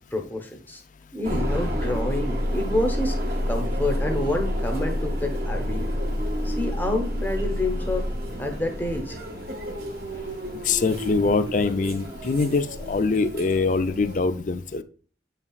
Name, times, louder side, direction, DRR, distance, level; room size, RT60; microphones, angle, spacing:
voice 1, 0.1-0.8 1.1-3.2 3.5-5.9 6.4-8.1 8.4-9.2, left 1 dB, 10° left, 3 dB, 0.8 m, -28 dB
sound 1, 1.2-14.2, equal, 55° right, 1.5 m, -29 dB
voice 2, 10.6-14.8, left 4 dB, 45° left, 11 dB, 0.4 m, -23 dB
8.0 x 5.7 x 2.3 m, 0.41 s
head